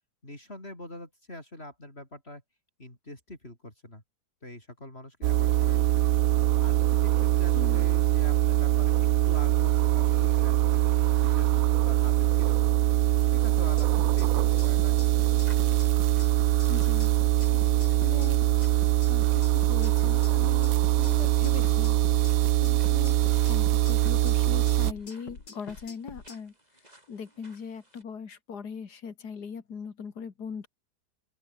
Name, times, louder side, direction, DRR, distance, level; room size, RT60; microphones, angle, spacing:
voice 1, 0.2-2.4 2.8-4.0 4.4-5.9 6.3-12.7 13.2-15.0, left 1 dB, 35° left, 6.5 m, -44 dB
sound 1, 5.2-24.9, right 14 dB, 70° right, 0.9 m, -23 dB
voice 2, 7.5-7.9 16.7-17.2 17.5-18.4 19.1-22.0 22.6-26.5 27.1-30.7, left 6 dB, 65° left, 2.5 m, -40 dB
sound 2, 13.6-26.4, left 4 dB, 90° left, 4.2 m, -45 dB
sound 3, 15.1-28.0, right 1 dB, 20° right, 7.2 m, -58 dB
open air
omnidirectional pair, 1.8 m